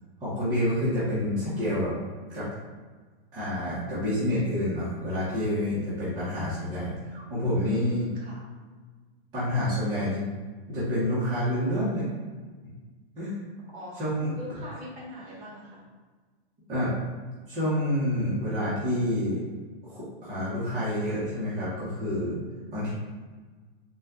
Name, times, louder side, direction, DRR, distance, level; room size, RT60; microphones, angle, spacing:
voice 1, 0.2-1.9 2.3-2.5 3.3-8.1 9.3-10.2 10.7-12.1 13.2-13.4 14.0-14.3 16.7-16.9 17.5-19.4 19.8-22.4 22.7-22.9, left 1 dB, 15° right, -12 dB, 0.8 m, -28 dB
voice 2, 13.7-15.8, left 1 dB, 40° right, -5 dB, 1.4 m, -42 dB
4.0 x 2.2 x 3.6 m, 1.4 s
supercardioid pair, 170°, 30 cm